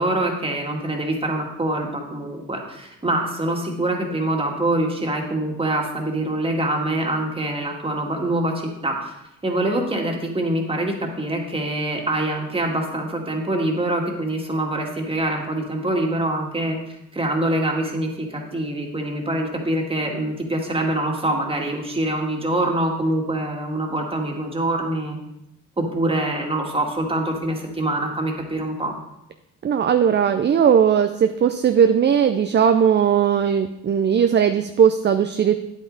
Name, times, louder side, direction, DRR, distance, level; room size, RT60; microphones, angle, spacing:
voice 1, 0.0-9.1 9.4-16.8 17.1-25.2 25.8-28.9, right 1 dB, 20° right, 1 dB, 2.0 m, -24 dB
voice 2, 29.6-35.5, right 8 dB, 35° right, 8 dB, 0.5 m, -18 dB
9.3 x 8.3 x 3.9 m, 0.86 s
cardioid pair, 90°, 30 cm